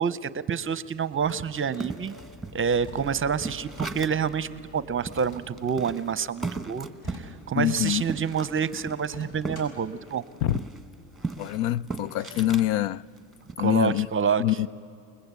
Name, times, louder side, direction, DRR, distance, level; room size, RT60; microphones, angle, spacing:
voice 1, 0.0-2.2 2.5-10.2 13.6-14.4, right 6 dB, 25° right, 0.6 m, -28 dB
sound 1, 1.1-1.9 2.8-3.6 5.1-5.9 6.9-7.9 9.0-9.9, left 1 dB, 65° left, 7.7 m, -46 dB
sound 2, 1.5-4.3 4.7-4.8 5.1-9.7 10.0-12.7 13.2-13.5, right 3 dB, ahead, 1.2 m, -37 dB
sound 3, 1.9-13.8, left 4 dB, 20° left, 6.0 m, -52 dB
voice 2, 7.5-8.0 10.4-10.6 11.4-13.0 13.6-14.1 14.4-14.7, left 14 dB, 85° left, 0.6 m, -25 dB
28.5 x 20.5 x 8.2 m
cardioid pair, 125°, 49 cm